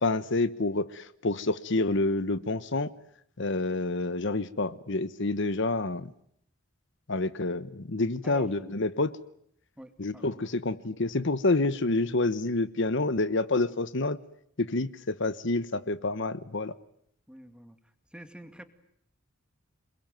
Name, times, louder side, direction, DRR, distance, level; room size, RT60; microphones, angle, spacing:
voice 1, 0.0-2.9 3.4-6.1 7.1-9.1 10.0-14.2 14.6-16.7, left 2 dB, 60° left, 15 dB, 1.1 m, -28 dB
voice 2, 9.8-10.4 17.3-17.8 18.1-18.6, right 1 dB, 5° right, 9 dB, 2.2 m, -47 dB
29.0 x 21.5 x 9.2 m, 0.70 s
head